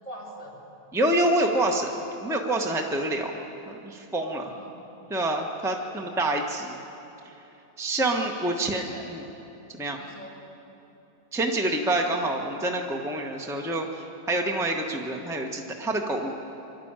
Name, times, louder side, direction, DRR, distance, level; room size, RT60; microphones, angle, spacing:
voice 1, 0.0-0.6 4.4-4.8 5.7-6.1 8.4-9.1 10.0-10.4, equal, 20° left, -4 dB, 3.7 m, -44 dB
voice 2, 0.9-3.3 3.7-4.5 5.1-6.8 7.8-9.3 9.8-10.0 11.3-16.3, right 1 dB, ahead, 1 dB, 1.2 m, -27 dB
24.0 x 12.5 x 9.0 m, 2.9 s
omnidirectional pair, 1.7 m